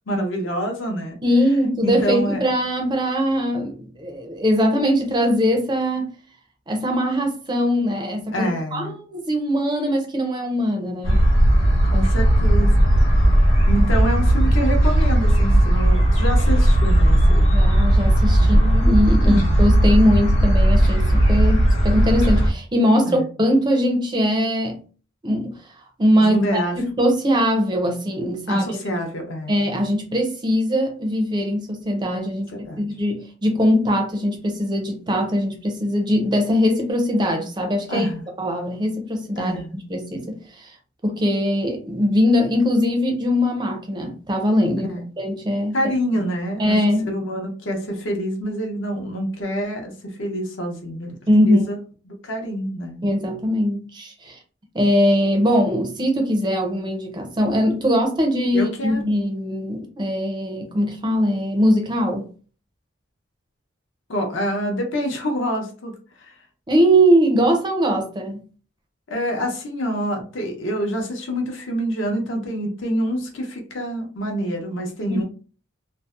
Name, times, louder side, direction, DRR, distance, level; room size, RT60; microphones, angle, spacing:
voice 1, 0.1-1.2 1.8-2.4 8.3-8.9 11.9-13.2 13.7-17.5 18.4-18.7 19.2-19.6 23.1-23.3 26.2-26.8 28.5-29.6 32.5-32.8 37.9-38.2 39.4-39.7 44.9-45.1 45.7-46.8 47.1-51.2 51.5-51.8 52.1-53.0 58.5-59.0 64.1-65.9 66.2-66.3 69.1-75.2, equal, 65° left, 0.6 m, -26 dB
voice 2, 1.2-6.1 6.7-11.3 17.5-24.8 25.2-25.6 26.0-28.8 29.5-38.1 38.4-39.5 39.9-40.8 41.0-44.9 45.2-45.9 46.6-47.1 51.3-51.6 53.0-54.4 54.7-62.3 66.7-68.4 75.1-75.2, equal, 20° right, 0.4 m, -21 dB
sound 1, 11.0-22.5, right 1 dB, 85° left, 1.0 m, -16 dB
2.6 x 2.0 x 2.3 m
head